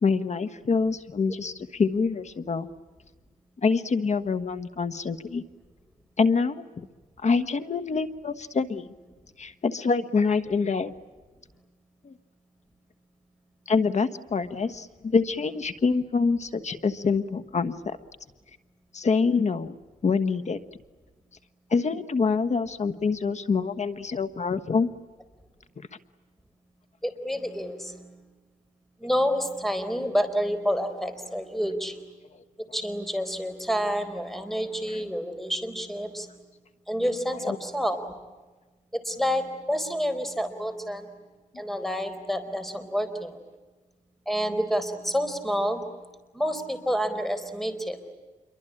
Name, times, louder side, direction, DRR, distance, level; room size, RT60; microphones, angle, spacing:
voice 1, 0.0-2.7 3.6-5.4 6.2-6.9 7.2-8.9 9.4-10.9 12.0-12.1 13.7-18.0 18.9-19.8 20.0-20.6 21.7-24.9 37.4-37.6, left 4 dB, 55° left, 12 dB, 1.4 m, -25 dB
voice 2, 27.0-28.2 29.0-32.0 32.7-36.3 36.9-38.1 38.9-41.1 41.6-43.4 44.3-45.9 46.3-48.0, equal, ahead, 10 dB, 4.2 m, -28 dB
28.0 x 23.5 x 8.8 m, 1.3 s
cardioid pair, 85°, 14 cm